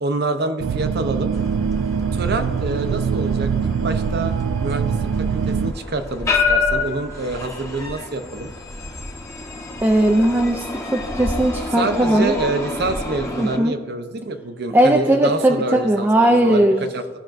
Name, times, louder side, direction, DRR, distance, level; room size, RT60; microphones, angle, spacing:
voice 1, 0.0-1.3 2.1-3.5 3.8-4.3 4.6-8.5 11.7-16.7 16.9-17.0, right 2 dB, 55° right, 8 dB, 0.7 m, -26 dB
sound 1, 0.6-5.7, right 6 dB, 90° right, 0.3 m, -23 dB
sound 2, 1.3-13.6, left 4 dB, 15° left, 0.9 m, -28 dB
voice 2, 9.8-10.6 10.9-12.3 13.4-13.7 14.7-16.9, right 1 dB, 10° right, 2 dB, 0.4 m, -17 dB
14.5 x 5.8 x 2.5 m, 1.5 s
head